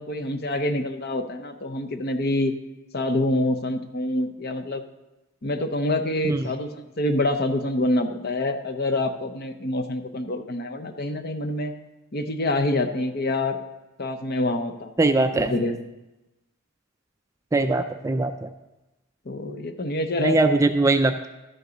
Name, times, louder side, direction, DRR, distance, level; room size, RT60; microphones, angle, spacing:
voice 1, 0.0-2.5 2.9-4.8 5.4-11.7 12.1-13.6 14.0-14.9 15.3-15.8 19.3-20.5, left 1 dB, 45° left, 6 dB, 0.8 m, -26 dB
voice 2, 15.0-15.5 17.5-18.5 20.2-21.3, right 2 dB, 15° right, 8 dB, 0.3 m, -21 dB
12.5 x 6.8 x 5.0 m, 1.0 s
head